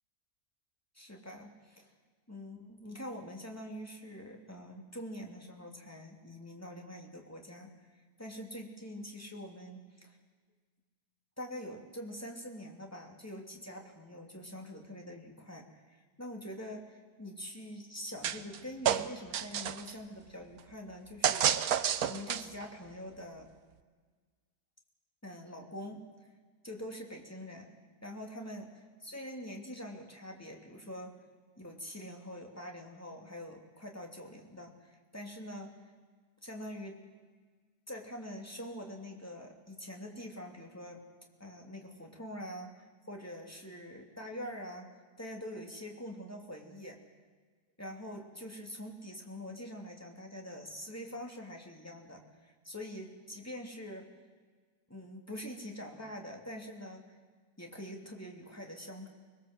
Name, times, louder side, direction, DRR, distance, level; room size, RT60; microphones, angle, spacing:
voice 1, 0.9-1.9 2.3-10.2 11.4-21.5 21.8-23.5 25.2-26.0 26.6-27.7 28.0-31.2 31.6-35.9 36.4-37.0 37.9-41.0 41.4-47.0 47.8-54.1 54.9-57.0 57.6-59.1, equal, 10° left, 2 dB, 2.8 m, -45 dB
sound 1, 18.2-18.6 18.9-19.9 21.2-22.6, right 9 dB, 65° right, 1.3 m, -29 dB
25.0 x 21.0 x 7.9 m, 1.5 s
omnidirectional pair, 1.8 m